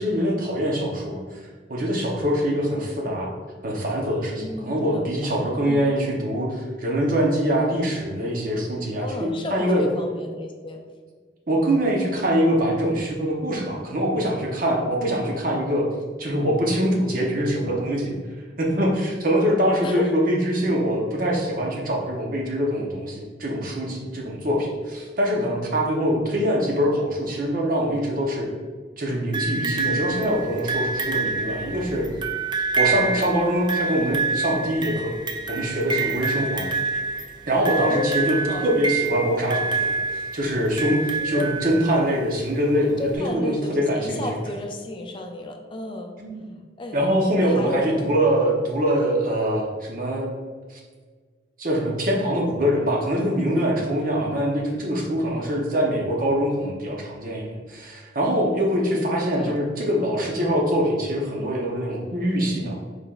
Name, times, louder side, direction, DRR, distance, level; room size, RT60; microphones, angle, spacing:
voice 1, 0.0-1.4 1.7-3.3 3.6-9.8 11.5-15.8 16.2-18.1 18.6-28.5 29.0-32.1 32.8-35.1 35.5-36.7 37.5-44.2 46.2-46.5 46.9-50.3 50.7-50.8 51.6-62.8, equal, 50° right, -1 dB, 0.9 m, -24 dB
voice 2, 4.4-5.9 9.0-10.8 19.8-20.1 32.8-33.1 37.7-38.8 41.2-41.5 43.0-46.1 46.8-47.0 47.4-48.0 58.8-59.5, left 2 dB, 30° left, 2 dB, 0.5 m, -32 dB
sound 1, 29.3-42.2 43.1-43.2, right 4 dB, 25° right, 0.4 m, -27 dB
4.9 x 4.3 x 2.4 m, 1.5 s
head